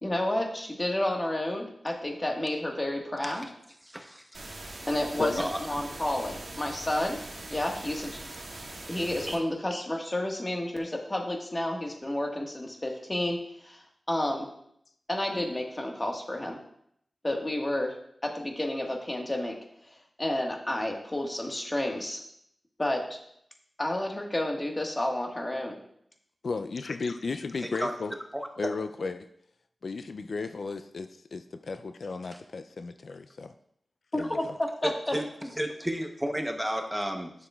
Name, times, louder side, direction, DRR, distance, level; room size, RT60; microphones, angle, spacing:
voice 1, 0.0-3.5 4.9-7.2 7.5-8.2 8.9-14.5 15.1-16.6 17.2-17.9 18.2-19.5 20.2-22.2 22.8-23.2 23.8-25.8 34.1-35.1, left 1 dB, 25° left, 1 dB, 1.4 m, -30 dB
voice 2, 3.8-4.4 5.2-5.9 9.3-9.4 27.8-27.9 28.3-28.5 34.8-35.3 35.6-37.3, equal, 5° right, 4 dB, 0.8 m, -32 dB
sound 1, 4.3-9.3, right 2 dB, 75° right, 2.0 m, -42 dB
voice 3, 26.4-28.1 28.6-29.3 29.8-33.5 34.1-34.5, left 4 dB, 70° left, 9 dB, 0.3 m, -34 dB
11.0 x 6.7 x 2.3 m, 0.72 s
wide cardioid pair, 75°, 0 cm